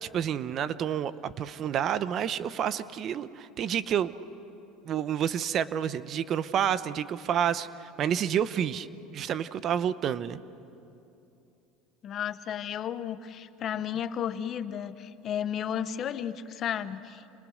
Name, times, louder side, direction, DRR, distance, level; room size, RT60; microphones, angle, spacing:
voice 1, 0.0-4.1 4.8-8.9 9.1-10.4, right 9 dB, 45° right, 14 dB, 0.8 m, -29 dB
voice 2, 12.0-17.4, left 9 dB, 40° left, 12 dB, 1.0 m, -33 dB
29.5 x 26.5 x 6.5 m, 2.7 s
supercardioid pair, 120°, 0 cm